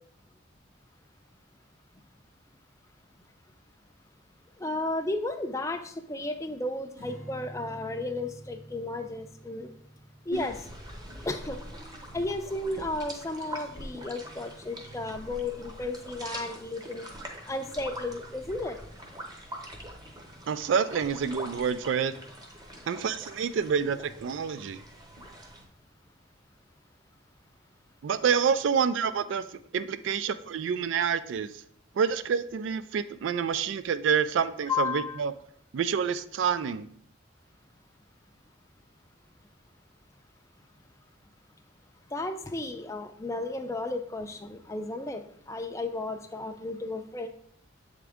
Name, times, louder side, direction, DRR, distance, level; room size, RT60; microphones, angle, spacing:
voice 1, 4.6-9.7 10.3-10.6 11.3-11.6 12.1-17.1 17.5-18.8 34.7-35.2 42.1-45.2 45.5-47.3, left 2 dB, 15° left, 6 dB, 0.4 m, -33 dB
Strum, 7.0-13.4, right 1 dB, 50° right, 2.1 m, -50 dB
sound 1, 10.3-25.6, right 1 dB, 20° right, 0.8 m, -43 dB
voice 2, 20.5-22.1 22.9-24.8 28.0-29.4 29.7-31.5 32.0-35.3 35.7-36.9, right 7 dB, 75° right, 14 dB, 0.3 m, -27 dB
7.8 x 3.7 x 3.5 m, 0.62 s
head